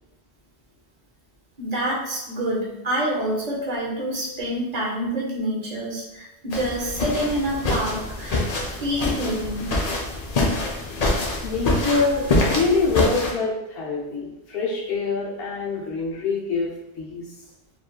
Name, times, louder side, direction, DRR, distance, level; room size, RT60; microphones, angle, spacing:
voice 1, 1.6-9.7, right 1 dB, 45° right, -4 dB, 0.8 m, -27 dB
sound 1, 6.5-13.3, left 2 dB, 50° left, 0.5 m, -25 dB
voice 2, 11.4-17.2, left 4 dB, 65° left, -4 dB, 1.0 m, -25 dB
3.1 x 2.5 x 2.3 m, 0.92 s
omnidirectional pair, 1.1 m